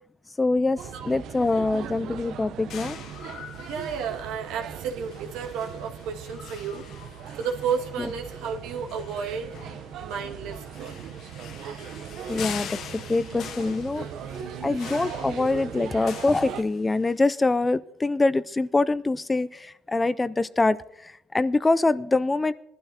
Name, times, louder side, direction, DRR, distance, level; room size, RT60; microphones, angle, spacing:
voice 1, 0.4-3.0 8.0-8.1 12.3-14.1 14.6-22.5, left 3 dB, 15° left, 16 dB, 0.4 m, -24 dB
sound 1, 0.8-16.6, right 8 dB, 65° right, 0.7 m, -39 dB
sound 2, 2.7-17.2, left 8 dB, 60° left, 0.8 m, -44 dB
voice 2, 3.6-9.5 10.0-11.1, right 6 dB, 90° right, 2 dB, 1.8 m, -32 dB
21.5 x 12.0 x 2.8 m, 0.86 s
cardioid pair, 135°, 0 cm